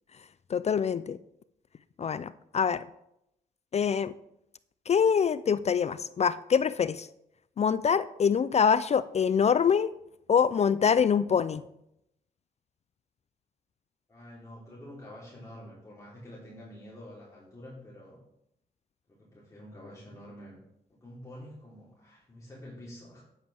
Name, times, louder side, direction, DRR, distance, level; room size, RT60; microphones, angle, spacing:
voice 1, 0.5-1.2 2.0-2.8 3.7-4.1 4.9-7.1 7.6-9.9 10.3-11.6, left 7 dB, 40° left, 17 dB, 0.4 m, -25 dB
voice 2, 14.1-18.2 19.1-20.6 20.9-23.2, left 1 dB, 20° left, -7 dB, 3.4 m, -47 dB
8.8 x 8.0 x 3.4 m, 0.80 s
supercardioid pair, 50°, 17 cm